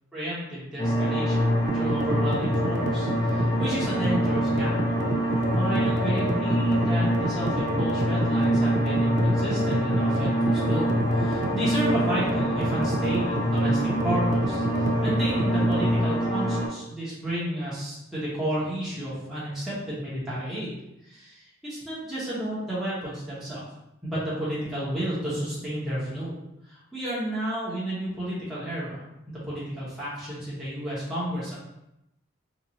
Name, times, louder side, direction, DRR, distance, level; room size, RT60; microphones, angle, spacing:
voice 1, 0.1-5.0 5.5-23.6 24.0-26.4 26.6-31.6, right 1 dB, ahead, -10 dB, 0.9 m, -32 dB
sound 1, 0.8-16.7, equal, 20° left, 0.6 m, -25 dB
sound 2, 1.7-16.0, right 1 dB, 35° right, 0.3 m, -30 dB
2.9 x 2.5 x 3.8 m, 0.87 s
head